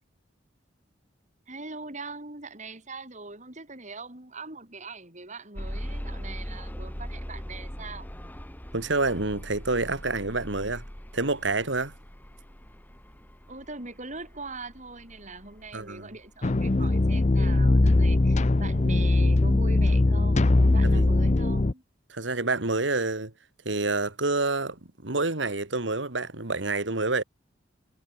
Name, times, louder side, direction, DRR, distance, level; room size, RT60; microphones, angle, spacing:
voice 1, 1.5-8.1 13.5-21.8, right 3 dB, 40° right, 6.6 m, -41 dB
sound 1, 5.6-17.5 18.2-18.3 18.8-18.9, equal, 10° left, 2.7 m, -41 dB
voice 2, 8.7-10.8 11.1-11.9 15.7-16.1 20.9-21.0 22.1-23.3 23.6-27.2, right 3 dB, 75° right, 2.6 m, -28 dB
sound 2, 16.4-21.7, left 2 dB, 40° left, 0.6 m, -21 dB
head